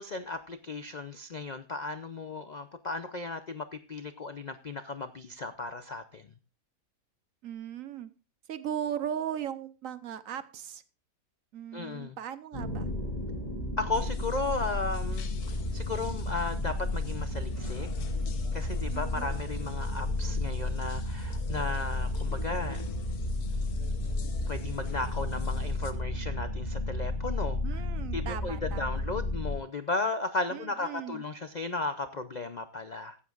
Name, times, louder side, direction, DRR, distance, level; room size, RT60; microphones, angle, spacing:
voice 1, 0.0-6.3 11.7-12.2 13.8-15.3 15.7-17.9 18.5-22.8 24.5-27.8 28.1-33.2, left 3 dB, 55° left, 9 dB, 0.5 m, -35 dB
voice 2, 7.4-8.1 8.5-10.8 11.5-12.9 18.9-19.3 27.6-29.0 30.5-31.2, right 9 dB, 65° right, 13 dB, 1.2 m, -37 dB
sound 1, 12.5-29.5, left 1 dB, 25° left, 5.1 m, -33 dB
sound 2, 13.9-25.9, left 4 dB, 80° left, 1.6 m, -43 dB
16.0 x 12.5 x 2.4 m, 0.34 s
omnidirectional pair, 1.6 m